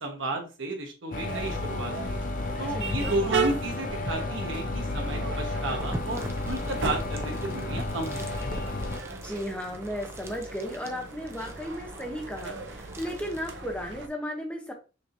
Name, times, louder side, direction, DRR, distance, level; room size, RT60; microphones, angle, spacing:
voice 1, 0.0-2.2 2.6-8.2 8.5-8.6, right 2 dB, 85° right, 3 dB, 1.3 m, -33 dB
sound 1, 1.1-9.0, left 2 dB, 45° left, 0.5 m, -32 dB
sound 2, 1.3-14.1, right 4 dB, 70° right, 0.6 m, -37 dB
voice 2, 2.8-3.3 9.1-14.7, equal, 5° left, 1 dB, 0.8 m, -35 dB
sound 3, 5.8-13.7, right 2 dB, 15° right, 0.4 m, -44 dB
5.9 x 2.9 x 2.7 m, 0.32 s
head